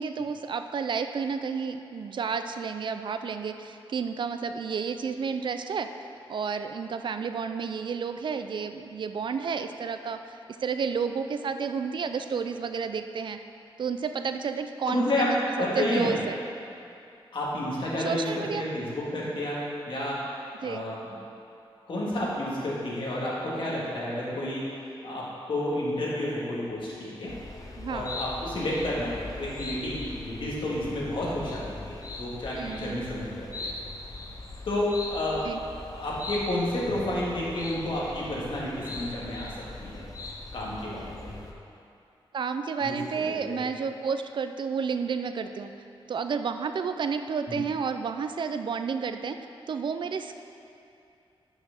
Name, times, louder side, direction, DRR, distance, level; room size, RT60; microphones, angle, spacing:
voice 1, 0.0-5.9 6.3-13.4 13.8-16.4 18.0-18.6 20.6-20.8 27.8-28.1 32.5-33.0 35.4-35.6 42.3-45.7 46.1-49.4 49.7-50.4, right 6 dB, 55° right, 8 dB, 0.3 m, -31 dB
voice 2, 14.9-15.3 15.6-16.1 17.3-20.2 20.6-21.0 21.9-24.6 25.0-27.3 27.9-33.7 34.7-35.4 35.9-40.1 40.5-41.3 42.8-43.6 47.5-47.6, left 1 dB, 60° left, -6 dB, 1.9 m, -30 dB
sound 1, 27.3-41.5, left 2 dB, 40° left, 0.7 m, -40 dB
6.1 x 6.1 x 6.6 m, 2.6 s
wide cardioid pair, 170°, 10 cm